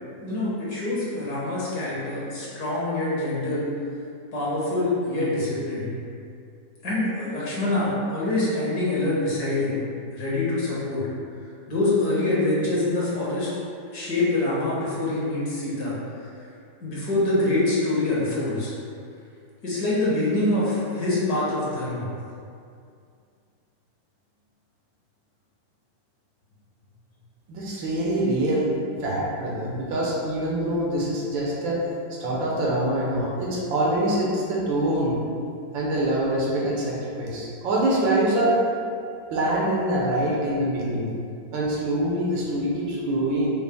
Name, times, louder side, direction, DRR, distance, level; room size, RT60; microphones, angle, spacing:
voice 1, 0.2-3.7 4.3-5.9 6.8-9.8 10.1-11.1 11.7-13.5 13.9-16.0 16.8-18.7 19.6-22.1, left 2 dB, 60° left, -8 dB, 1.5 m, -25 dB
voice 2, 27.5-28.7 29.0-31.8 32.2-35.2 35.7-38.5 39.3-41.1 41.5-43.5, right 1 dB, 85° right, -5 dB, 1.6 m, -24 dB
5.3 x 2.1 x 3.5 m, 2.4 s
omnidirectional pair, 2.0 m